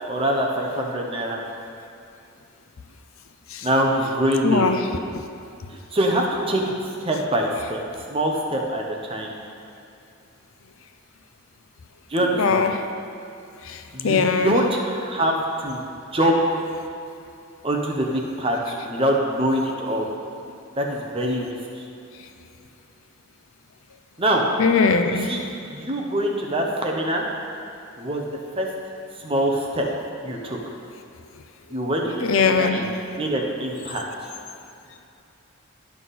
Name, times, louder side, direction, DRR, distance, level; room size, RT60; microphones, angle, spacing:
voice 1, 0.1-1.4 3.6-4.7 5.9-6.7 7.0-7.8 8.1-9.3 12.1-12.7 13.9-15.8 16.1-16.6 17.6-20.1 20.8-21.8 24.2-24.4 25.0-27.2 28.0-28.3 28.6-28.7 29.2-29.8 30.2-30.6 31.7-34.0, right 1 dB, 25° right, 0 dB, 0.9 m, -24 dB
voice 2, 4.4-4.8 12.4-12.8 13.7-14.5 24.6-25.3 32.2-32.9, left 5 dB, 70° left, 7 dB, 0.5 m, -20 dB
11.0 x 5.8 x 4.1 m, 2.7 s
head